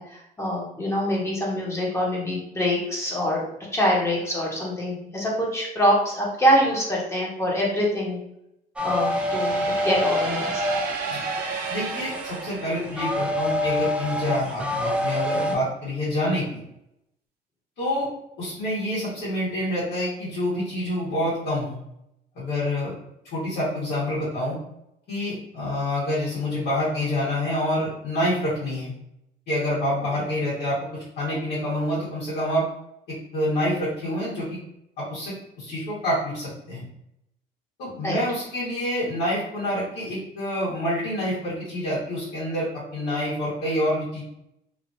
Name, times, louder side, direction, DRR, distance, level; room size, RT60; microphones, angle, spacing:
voice 1, 0.0-3.4 3.7-8.2 8.8-10.5 38.0-38.2, equal, 15° left, -4 dB, 1.0 m, -24 dB
sound 1, 8.8-15.6, equal, 5° right, 0.4 m, -27 dB
sound 2, 8.8-13.6, right 4 dB, 60° right, 0.6 m, -33 dB
voice 2, 11.7-16.4 17.8-18.1 18.4-21.8 22.3-22.9 23.3-24.6 25.1-28.9 29.5-32.7 33.1-34.6 35.0-36.9 37.8-44.2, left 1 dB, 80° left, -8 dB, 1.4 m, -27 dB
3.0 x 2.4 x 2.6 m, 0.82 s
cardioid pair, 110°, 17 cm